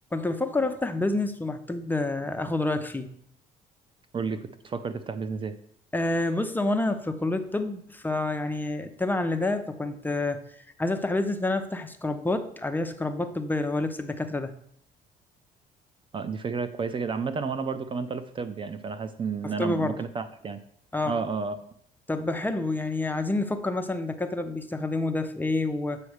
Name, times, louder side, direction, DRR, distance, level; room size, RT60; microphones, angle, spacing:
voice 1, 0.1-3.1 5.9-14.5 19.4-20.0 20.9-21.1 22.1-26.0, left 2 dB, 10° left, 7 dB, 0.6 m, -28 dB
voice 2, 4.1-5.6 16.1-20.6 21.0-21.6, right 5 dB, 30° right, 11 dB, 0.5 m, -31 dB
8.1 x 3.3 x 6.4 m, 0.67 s
cardioid pair, 110°, 17 cm